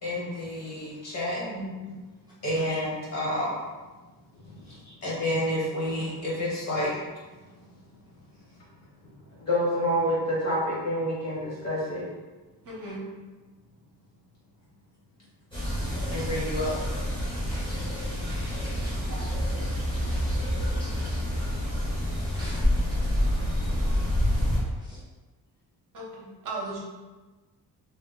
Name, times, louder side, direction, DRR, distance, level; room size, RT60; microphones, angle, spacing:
voice 1, 0.0-1.4 1.8-1.9 2.4-3.6 4.4-7.0 9.3-12.1 16.1-16.7, equal, 40° left, -6 dB, 1.2 m, -29 dB
voice 2, 1.4-1.7 12.6-13.0 19.1-19.3 25.9-26.8, right 2 dB, 50° right, -4 dB, 0.8 m, -37 dB
sound 1, 15.5-24.6, equal, 15° left, 0.8 m, -28 dB
voice 3, 15.7-16.4 17.5-19.0 20.0-21.5 22.2-22.6 22.9-23.0 24.8-25.0, equal, 10° right, -11 dB, 0.6 m, -49 dB
2.8 x 2.0 x 3.7 m, 1.2 s
cardioid pair, 155°, 39 cm